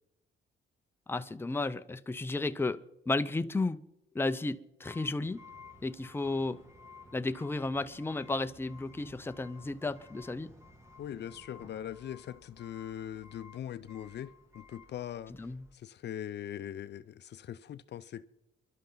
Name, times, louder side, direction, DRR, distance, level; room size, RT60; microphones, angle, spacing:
voice 1, 1.1-2.8 3.1-3.8 4.1-5.4 5.8-6.6 7.1-10.5 15.4-15.6, left 2 dB, 10° left, 0.6 m, -33 dB
sound 1, 4.8-15.7, left 3 dB, 15° right, 2.2 m, -55 dB
voice 2, 11.0-18.3, left 10 dB, 60° left, 0.6 m, -41 dB
28.5 x 11.5 x 3.9 m
cardioid pair, 90°, 20 cm